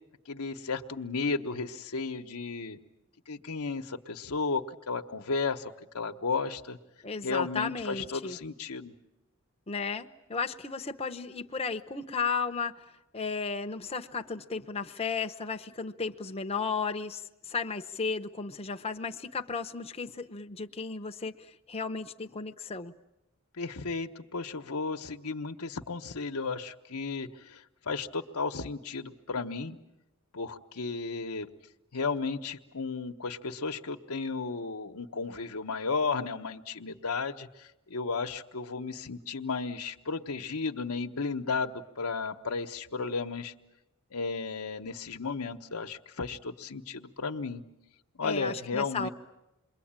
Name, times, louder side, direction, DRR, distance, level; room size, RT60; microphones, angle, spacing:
voice 1, 0.3-2.8 3.3-6.8 7.2-8.9 23.6-29.8 30.3-31.5 31.9-43.5 44.1-47.6 48.2-49.1, left 4 dB, 80° left, 4 dB, 1.1 m, -34 dB
voice 2, 7.0-8.4 9.7-12.8 13.1-22.9 48.2-49.1, left 5 dB, 25° left, 4 dB, 0.9 m, -34 dB
28.0 x 22.0 x 8.9 m, 0.95 s
head